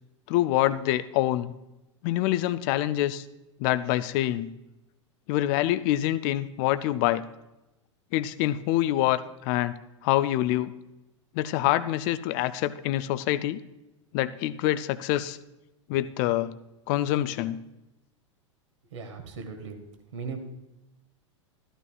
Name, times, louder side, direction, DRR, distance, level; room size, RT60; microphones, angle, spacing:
voice 1, 0.3-1.5 2.0-3.2 3.6-4.5 5.3-7.2 8.1-9.7 10.0-10.7 11.3-13.6 14.1-15.4 15.9-16.5 16.9-17.6, left 14 dB, 45° left, 14 dB, 0.5 m, -26 dB
voice 2, 18.9-19.8 20.1-20.4, right 5 dB, 65° right, 5 dB, 1.6 m, -37 dB
13.5 x 12.5 x 2.3 m, 0.95 s
figure-of-eight pair, 90°, 16 cm